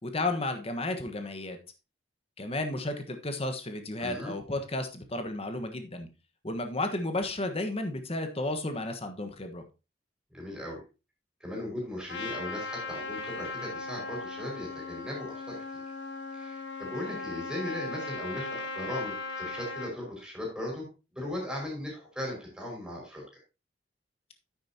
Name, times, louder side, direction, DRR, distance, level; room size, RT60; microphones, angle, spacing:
voice 1, 0.0-1.6 2.4-6.1 6.4-9.6, left 2 dB, 35° left, 7 dB, 1.3 m, -33 dB
voice 2, 4.0-4.3 10.3-10.8 11.4-15.8 16.3-20.9 21.1-23.2, left 1 dB, 5° right, -2 dB, 4.9 m, -38 dB
Trumpet, 12.1-19.9, left 3 dB, 80° left, 1.4 m, -38 dB
9.8 x 8.7 x 2.9 m, 0.29 s
head